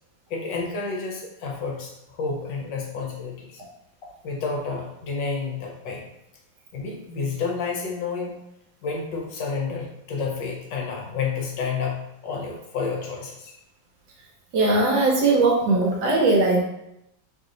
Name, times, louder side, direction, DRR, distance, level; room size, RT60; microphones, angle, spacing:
voice 1, 0.3-3.6 4.0-6.1 6.7-8.3 8.8-13.5, left 4 dB, 75° left, -1 dB, 1.3 m, -30 dB
voice 2, 14.5-16.6, right 2 dB, 70° right, 0 dB, 1.0 m, -19 dB
3.1 x 2.7 x 3.8 m, 0.83 s
omnidirectional pair, 2.1 m